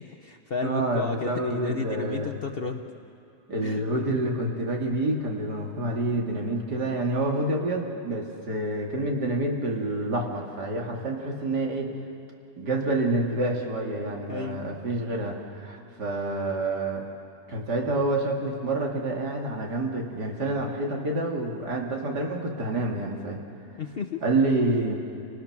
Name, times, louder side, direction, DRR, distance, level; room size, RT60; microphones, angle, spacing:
voice 1, 0.0-2.8 3.6-4.0 14.3-14.6 23.8-24.4, left 4 dB, 50° left, 6 dB, 0.8 m, -33 dB
voice 2, 0.6-2.3 3.5-11.9 12.6-17.0 17.5-23.4 24.2-25.0, right 2 dB, 80° right, 0 dB, 2.9 m, -28 dB
29.5 x 19.5 x 6.0 m, 2.6 s
omnidirectional pair, 1.8 m